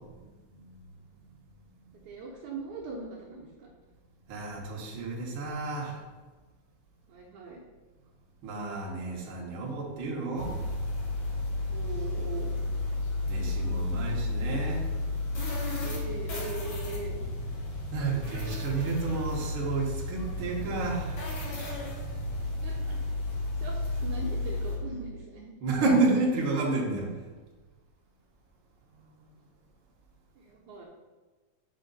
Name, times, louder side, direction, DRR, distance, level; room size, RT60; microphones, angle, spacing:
voice 1, 1.9-3.7 7.1-7.6 11.7-12.5 15.8-17.2 22.6-23.0 23.6-25.5 30.4-30.9, right 3 dB, 70° right, -3 dB, 2.1 m, -40 dB
voice 2, 4.3-6.0 8.4-10.5 13.3-14.8 17.9-21.2 25.6-27.1, right 3 dB, 55° right, -3 dB, 1.5 m, -30 dB
sound 1, 10.4-24.8, left 2 dB, 55° left, 1.4 m, -32 dB
6.7 x 5.5 x 4.0 m, 1.3 s
omnidirectional pair, 4.0 m